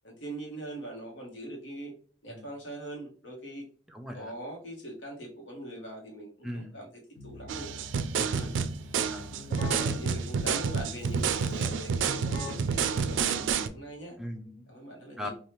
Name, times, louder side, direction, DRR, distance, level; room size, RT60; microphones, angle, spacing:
voice 1, 0.0-1.9 2.2-3.7 4.1-6.9 7.2-7.7 8.3-8.6 9.7-14.2 14.7-15.3, right 1 dB, 85° left, 1 dB, 1.0 m, -42 dB
voice 2, 3.9-4.3 6.4-6.7 8.2-8.5 9.1-10.1 11.7-11.8 14.2-14.6 15.2-15.3, equal, 5° right, 2 dB, 0.4 m, -40 dB
Keyboard (musical), 7.1-14.0, left 2 dB, 65° left, 0.7 m, -45 dB
sound 1, 7.5-13.7, right 6 dB, 90° right, 0.3 m, -29 dB
2.9 x 2.3 x 3.3 m, 0.41 s
head